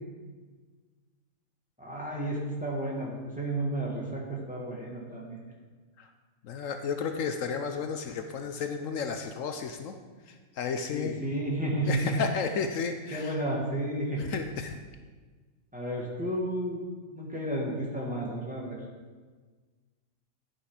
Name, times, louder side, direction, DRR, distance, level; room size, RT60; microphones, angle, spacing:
voice 1, 1.8-5.4 10.9-12.2 13.1-14.2 15.7-16.8 17.1-18.8, right 1 dB, 5° right, -4 dB, 1.8 m, -32 dB
voice 2, 6.4-10.0 10.3-11.2 11.8-13.4 14.2-14.8, left 6 dB, 70° left, 6 dB, 1.0 m, -33 dB
11.0 x 5.9 x 4.9 m, 1.4 s
omnidirectional pair, 1.5 m